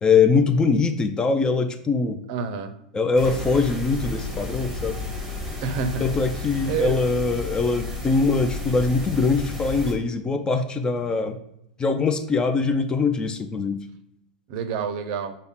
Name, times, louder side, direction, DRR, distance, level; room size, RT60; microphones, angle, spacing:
voice 1, 0.0-2.2 2.9-5.0 6.0-11.4 11.8-13.8, left 4 dB, 15° left, 7 dB, 0.3 m, -22 dB
voice 2, 2.3-2.7 5.6-6.1 6.7-7.0 14.5-15.4, right 6 dB, 50° right, 9 dB, 0.5 m, -28 dB
sound 1, 3.2-9.9, left 3 dB, 10° right, 0.8 m, -32 dB
5.5 x 2.1 x 3.6 m, 0.80 s
supercardioid pair, 140°, 5 cm